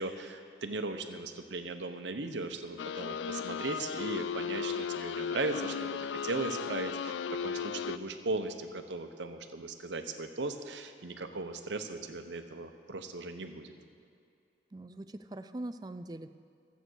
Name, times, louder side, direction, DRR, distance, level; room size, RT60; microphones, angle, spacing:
voice 1, 0.0-7.1 7.4-13.7, right 3 dB, 85° right, 7 dB, 0.9 m, -37 dB
sound 1, 2.8-8.0, left 7 dB, 80° left, 0.3 m, -36 dB
voice 2, 14.7-16.3, right 1 dB, 20° right, 10 dB, 0.4 m, -42 dB
13.5 x 8.1 x 6.3 m, 2.5 s
head